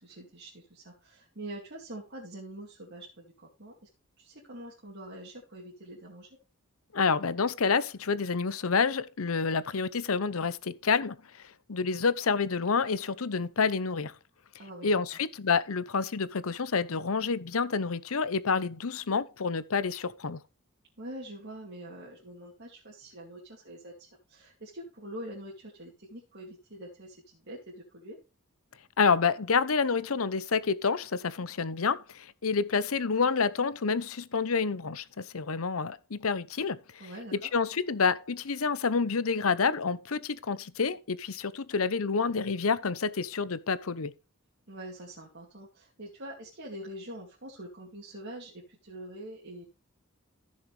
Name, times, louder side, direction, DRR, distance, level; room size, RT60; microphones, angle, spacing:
voice 1, 0.0-3.7 4.2-6.3 14.6-14.9 21.0-28.2 37.0-37.5 44.7-49.6, right 1 dB, 55° right, 2.6 m, -44 dB
voice 2, 6.9-11.2 11.7-14.1 14.8-20.4 29.0-36.8 37.3-44.1, left 5 dB, 75° left, 0.8 m, -28 dB
14.5 x 6.5 x 3.3 m
head